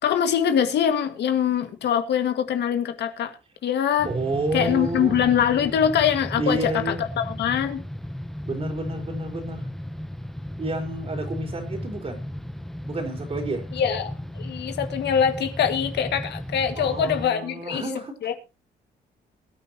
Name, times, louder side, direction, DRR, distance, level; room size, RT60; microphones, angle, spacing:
voice 1, 0.0-3.3 3.6-4.1 4.5-7.0 7.2-7.8 13.7-17.8 18.2-18.4, left 8 dB, 80° left, 7 dB, 1.9 m, -23 dB
sound 1, 4.0-17.3, equal, ahead, 0.9 m, -35 dB
voice 2, 4.0-5.2 6.4-7.1 8.5-9.7 10.6-12.2 12.9-13.6 16.8-18.3, right 2 dB, 35° right, 3 dB, 3.9 m, -30 dB
22.5 x 9.8 x 2.9 m, 0.29 s
cardioid pair, 130°, 17 cm